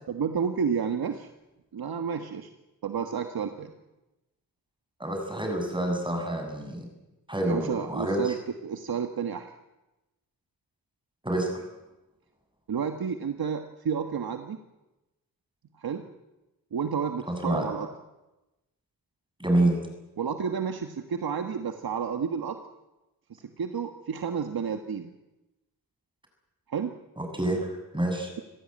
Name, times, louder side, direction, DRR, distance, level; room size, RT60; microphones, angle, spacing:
voice 1, 0.1-1.3 1.7-2.5 2.8-3.7 7.4-8.3 8.6-9.5 12.7-14.6 15.8-16.0 16.7-17.9 20.2-22.6 23.3-25.1 26.7-26.9, right 6 dB, 80° right, 6 dB, 1.6 m, -31 dB
voice 2, 5.0-6.9 7.3-8.3 11.2-11.6 17.3-17.7 19.4-19.8 27.2-28.3, right 1 dB, 15° right, 3 dB, 7.1 m, -27 dB
26.5 x 16.5 x 8.8 m, 1.0 s
wide cardioid pair, 95°, 36 cm